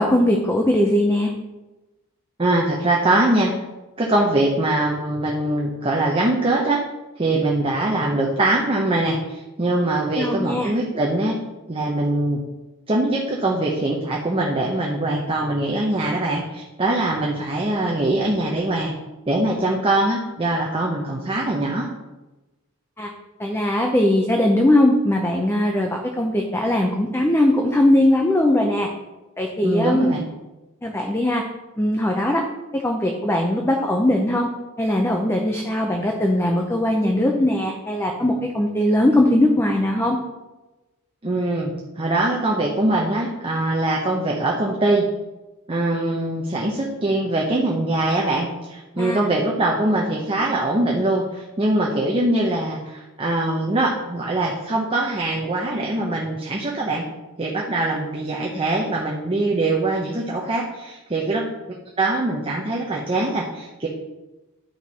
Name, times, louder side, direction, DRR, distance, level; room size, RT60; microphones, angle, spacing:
voice 1, 0.0-1.3 10.2-10.7 23.0-23.1 23.4-28.9 29.4-30.1 30.8-31.4 31.8-32.5 32.7-34.5 34.8-40.2 49.0-49.2, left 1 dB, 10° left, 1 dB, 0.6 m, -20 dB
voice 2, 2.4-3.5 4.0-6.8 7.2-11.4 11.7-12.4 12.9-18.9 19.3-21.9 29.6-30.2 41.2-45.0 45.7-57.1 57.4-61.5 62.0-63.9, right 2 dB, 25° right, -1 dB, 0.9 m, -22 dB
10.5 x 4.6 x 5.5 m, 1.1 s
head